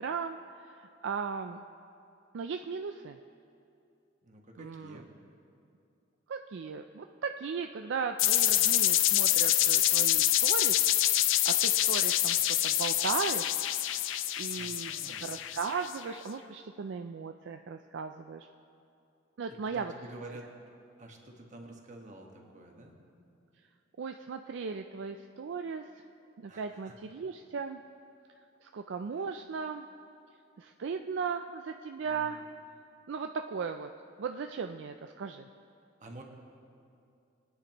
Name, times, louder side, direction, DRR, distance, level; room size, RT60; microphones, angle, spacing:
voice 1, 0.0-1.6 2.3-3.2 4.6-5.0 6.3-10.8 11.4-13.6 14.4-18.5 19.4-19.9 24.0-25.9 26.4-27.8 28.6-29.9 30.6-32.4 33.1-33.9 34.2-35.5, right 5 dB, 65° right, 6 dB, 0.4 m, -37 dB
voice 2, 4.2-5.1 14.5-15.3 19.5-20.5 21.0-22.9 26.5-26.9 29.2-29.3 32.0-32.4 36.0-36.2, right 1 dB, 40° right, 1 dB, 1.4 m, -49 dB
sound 1, 8.2-16.0, left 13 dB, 75° left, 0.5 m, -26 dB
22.0 x 9.6 x 3.0 m, 2.6 s
head